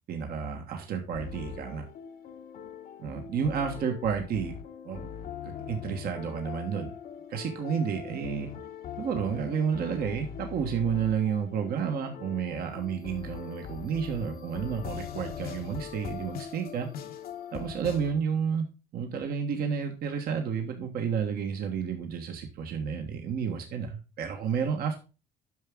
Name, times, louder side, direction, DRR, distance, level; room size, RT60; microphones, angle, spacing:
voice 1, 0.1-1.8 3.0-4.5 4.8-5.1 5.4-6.9 7.3-8.5 9.0-16.9 17.5-18.7 18.9-25.0, right 7 dB, 65° right, 3 dB, 1.5 m, -31 dB
sound 1, 1.1-18.1, left 8 dB, 60° left, 1.0 m, -41 dB
9.3 x 6.0 x 3.7 m, 0.31 s
cardioid pair, 110°, 17 cm